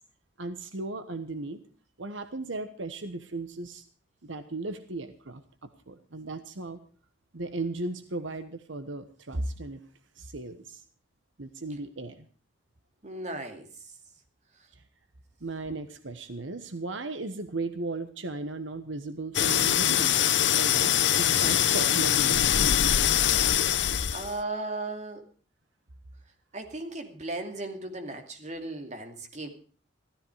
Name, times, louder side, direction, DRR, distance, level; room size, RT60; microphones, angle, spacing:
voice 1, 0.4-1.6 2.0-3.8 4.2-6.8 7.3-9.8 10.2-10.8 11.4-12.3 14.8-14.9 15.4-20.2 20.5-22.4, right 2 dB, 85° right, 10 dB, 1.3 m, -36 dB
voice 2, 13.0-13.7 24.1-25.2 26.5-29.6, right 2 dB, 40° right, 5 dB, 2.6 m, -36 dB
sound 1, 19.3-24.4, left 10 dB, 65° left, 0.7 m, -23 dB
15.5 x 14.0 x 4.9 m, 0.40 s
head